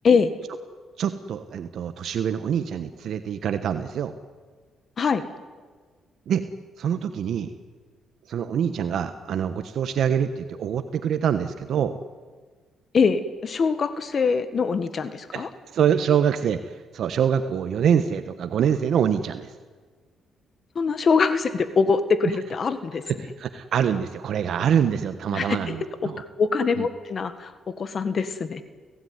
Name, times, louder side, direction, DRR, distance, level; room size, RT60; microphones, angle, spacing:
voice 1, 1.0-4.1 6.3-6.4 6.8-7.5 8.3-12.0 15.3-19.5 23.1-26.2 26.8-26.9, right 8 dB, 65° right, 10 dB, 1.2 m, -25 dB
voice 2, 12.9-15.5 20.7-23.0 25.3-25.8 26.0-27.5 27.8-28.6, left 5 dB, 45° left, 12 dB, 1.7 m, -23 dB
29.5 x 16.5 x 9.6 m, 1.5 s
cardioid pair, 90°, 0 cm